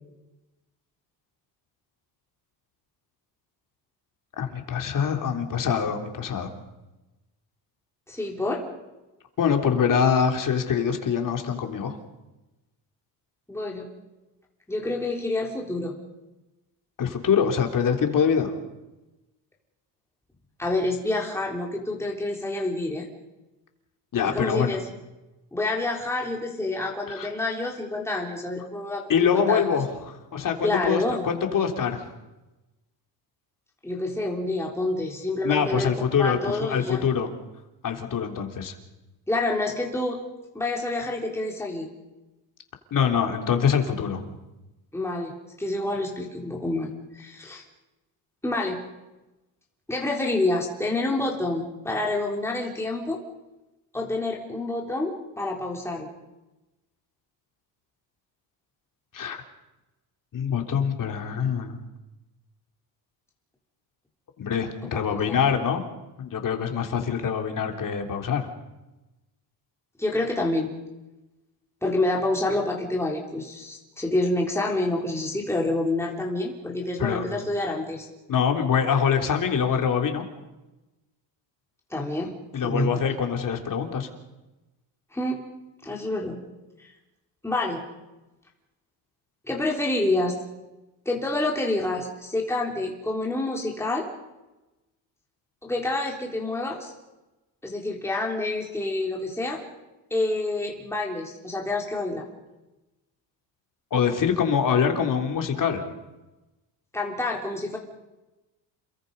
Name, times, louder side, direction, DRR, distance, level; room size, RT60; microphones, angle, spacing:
voice 1, 4.4-6.5 9.4-12.0 17.0-18.5 24.1-24.8 27.1-27.3 29.1-32.1 35.4-37.3 37.8-38.7 42.9-44.2 59.1-59.4 60.3-61.8 64.4-65.9 66.2-68.5 77.0-77.2 78.3-80.2 82.5-84.1 103.9-105.8, left 7 dB, 45° left, 4 dB, 3.6 m, -24 dB
voice 2, 8.1-8.6 13.5-13.9 14.7-15.9 20.6-23.1 24.3-24.9 25.5-29.6 30.6-31.2 33.8-37.0 39.3-40.2 40.5-41.9 44.9-47.6 48.4-48.8 49.9-53.2 53.9-56.1 64.8-65.4 70.0-70.7 71.8-78.1 81.9-82.3 82.6-83.2 85.1-85.4 85.8-86.4 86.8-86.9 87.4-87.8 89.5-90.4 91.1-94.1 95.6-96.9 97.6-99.6 100.1-102.3 106.9-107.8, left 2 dB, 5° left, -1 dB, 3.6 m, -28 dB
29.0 x 22.5 x 5.5 m, 1.0 s
cardioid pair, 120°, 45 cm